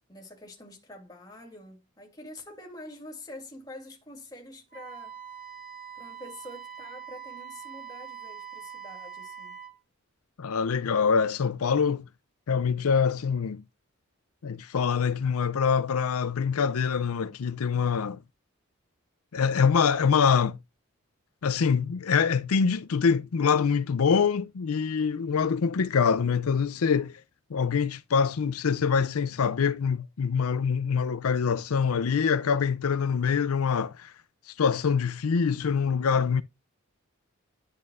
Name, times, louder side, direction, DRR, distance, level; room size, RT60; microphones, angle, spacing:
voice 1, 0.1-5.2 5.9-9.6, left 1 dB, 15° left, 2.6 m, -46 dB
Wind instrument woodwind instrument, 4.7-9.8, right 7 dB, 40° right, 2.0 m, -43 dB
voice 2, 10.4-12.1 12.5-13.6 14.4-18.2 19.3-20.6 21.4-27.2 27.5-34.1 34.5-36.4, left 6 dB, 80° left, 0.5 m, -25 dB
10.5 x 6.5 x 2.5 m
head